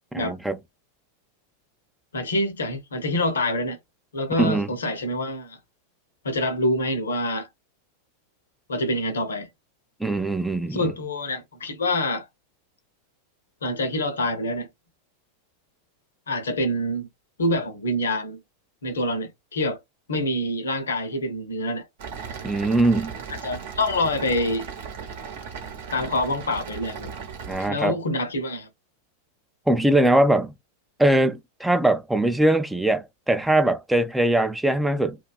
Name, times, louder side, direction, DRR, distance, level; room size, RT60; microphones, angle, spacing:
voice 1, 0.1-0.6 4.4-4.7 10.0-10.8 22.4-23.1 27.5-28.0 29.7-30.5 31.0-35.2, right 1 dB, 5° right, 0.3 m, -21 dB
voice 2, 2.1-3.8 4.1-5.6 6.2-7.5 8.7-9.5 10.7-12.3 13.6-14.7 16.3-17.1 17.4-18.4 18.8-19.8 20.1-21.9 23.3-24.7 25.9-27.1 27.7-28.7, left 1 dB, 70° left, 0.7 m, -26 dB
sound 1, 22.0-27.7, right 6 dB, 55° right, 0.8 m, -37 dB
2.6 x 2.2 x 2.3 m
figure-of-eight pair, 90°, 0 cm